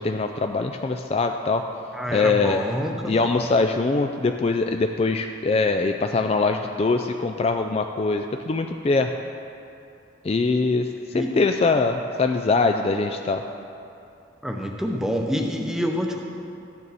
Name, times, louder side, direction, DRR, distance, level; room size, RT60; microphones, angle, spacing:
voice 1, 0.0-1.6 2.1-2.6 3.0-9.1 10.2-10.9 11.1-13.4, left 3 dB, 30° left, 5 dB, 0.3 m, -22 dB
voice 2, 1.9-3.2 11.1-11.3 14.4-16.2, equal, ahead, 1 dB, 0.7 m, -27 dB
13.5 x 9.3 x 4.1 m, 2.7 s
head